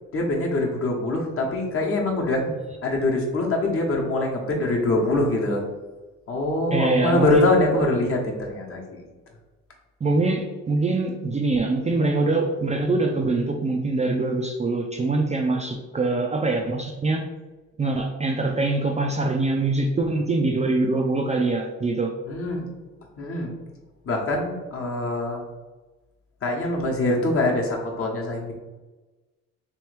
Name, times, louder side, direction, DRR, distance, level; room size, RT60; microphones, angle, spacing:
voice 1, 0.1-2.4 2.8-5.6 6.3-8.8 22.3-22.7 23.2-23.5 24.0-25.4 26.4-28.5, left 2 dB, 45° left, -1 dB, 1.0 m, -23 dB
voice 2, 6.7-7.4 10.0-17.2 17.8-22.1, right 3 dB, 25° right, 2 dB, 0.3 m, -24 dB
3.4 x 3.1 x 3.3 m, 1.2 s
cardioid pair, 90°, 30 cm